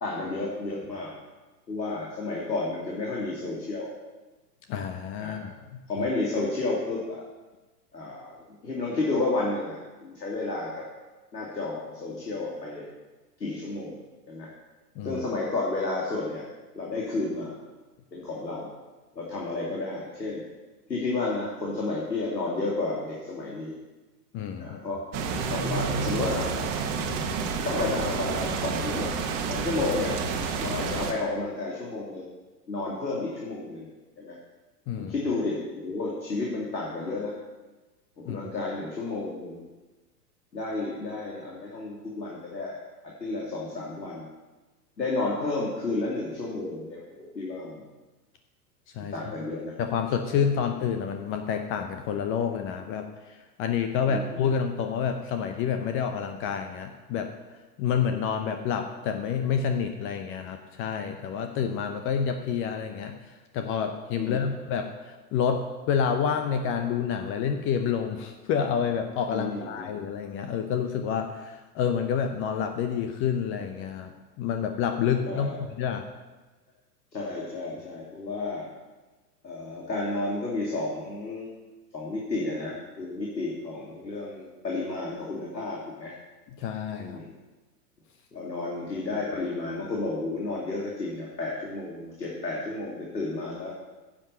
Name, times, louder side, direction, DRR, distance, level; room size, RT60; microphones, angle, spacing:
voice 1, 0.0-1.1 1.7-3.9 5.2-5.5 5.9-7.2 7.9-8.3 8.6-10.8 11.3-12.9 13.4-14.0 14.3-14.5 15.0-16.4 16.7-17.6 18.1-18.7 19.1-20.4 20.9-23.7 24.6-25.0 25.5-26.5 27.6-29.1 29.5-30.2 30.6-32.3 32.7-33.9 34.2-34.4 35.0-37.3 38.3-39.6 40.5-42.7 43.2-44.3 45.0-47.8 49.1-49.7 54.1-54.5 64.2-64.5 69.3-70.0 75.3-75.6 77.1-78.7 79.4-81.5 81.9-86.1 87.0-87.3 88.3-93.7, left 2 dB, 85° left, -4 dB, 2.5 m, -31 dB
voice 2, 4.7-5.8 15.0-15.2 24.3-24.8 34.9-35.1 38.2-38.4 48.9-49.1 49.8-53.1 53.6-57.3 57.8-63.1 63.5-76.0 86.6-87.2, left 7 dB, 25° left, 6 dB, 0.7 m, -28 dB
sound 1, 25.1-31.1, right 5 dB, 35° right, 1.4 m, -29 dB
10.5 x 7.6 x 5.5 m, 1.2 s
figure-of-eight pair, 105°, 49 cm